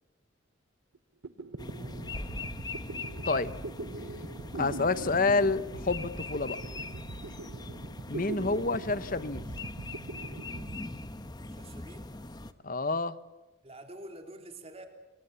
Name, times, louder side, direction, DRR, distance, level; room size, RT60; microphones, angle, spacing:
sound 1, 0.9-1.0 1.2-11.7, right 3 dB, 85° right, 0.9 m, -42 dB
sound 2, 1.6-12.5, left 2 dB, 20° left, 0.9 m, -42 dB
voice 1, 1.8-2.5 11.5-12.1 13.6-14.9, right 1 dB, 30° right, 4 dB, 3.4 m, -48 dB
voice 2, 4.5-6.6 8.1-9.5 12.6-13.2, left 3 dB, 45° left, 14 dB, 1.0 m, -28 dB
27.0 x 23.5 x 7.1 m, 1.1 s
head